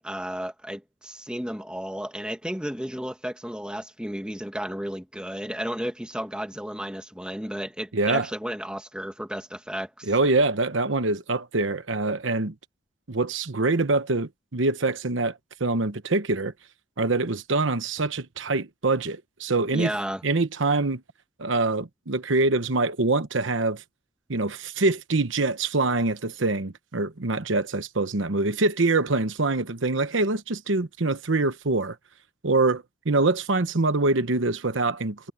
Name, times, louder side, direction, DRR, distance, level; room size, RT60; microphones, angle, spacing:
voice 1, 0.0-10.1 19.7-20.2, equal, 5° right, 1.8 m, -33 dB
voice 2, 7.9-8.3 10.0-12.5 13.1-16.5 17.0-19.9 20.2-21.0 21.4-23.8 24.3-32.0 32.4-35.3, right 3 dB, 75° right, 1.1 m, -24 dB
head